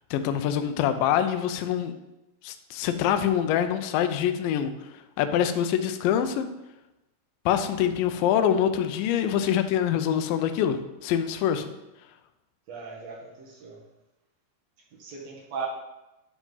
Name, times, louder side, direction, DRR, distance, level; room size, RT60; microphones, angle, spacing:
voice 1, 0.1-1.9 2.4-6.5 7.5-11.7, left 9 dB, 85° left, 8 dB, 2.0 m, -25 dB
voice 2, 12.7-13.8 14.9-15.7, right 6 dB, 60° right, -2 dB, 1.8 m, -37 dB
11.0 x 4.9 x 3.9 m, 0.96 s
omnidirectional pair, 4.7 m